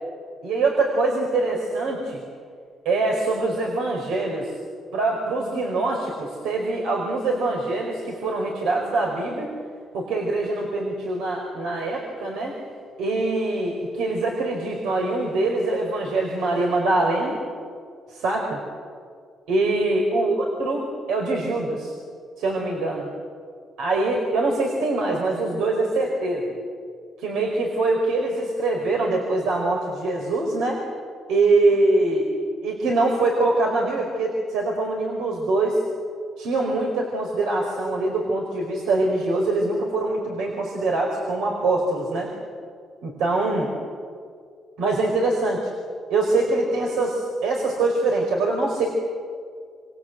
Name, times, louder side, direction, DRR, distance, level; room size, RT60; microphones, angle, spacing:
voice 1, 0.4-2.2 2.8-4.5 4.9-9.5 9.9-12.6 13.0-17.4 18.1-18.6 19.5-21.9 22.4-23.1 23.8-26.5 27.2-30.8 31.3-32.3 32.6-35.8 36.4-42.3 43.0-43.7 44.8-45.7 46.1-48.9, right 2 dB, 90° right, 0 dB, 4.7 m, -23 dB
28.5 x 25.5 x 8.1 m, 2.1 s
cardioid pair, 90°, 0 cm